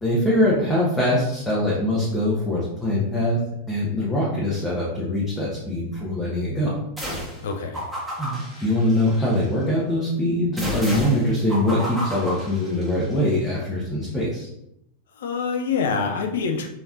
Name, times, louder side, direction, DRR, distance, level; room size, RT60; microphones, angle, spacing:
voice 1, 0.0-3.4 3.7-6.7 8.2-14.5, left 1 dB, 5° left, -8 dB, 1.0 m, -23 dB
sound 1, 7.0-7.4 7.7-9.5 10.6-13.2, equal, 10° right, 1.3 m, -32 dB
voice 2, 7.4-7.9 8.5-8.7 15.1-16.7, left 5 dB, 60° left, 4 dB, 0.5 m, -26 dB
4.0 x 3.4 x 2.4 m, 0.82 s
figure-of-eight pair, 90°, 0 cm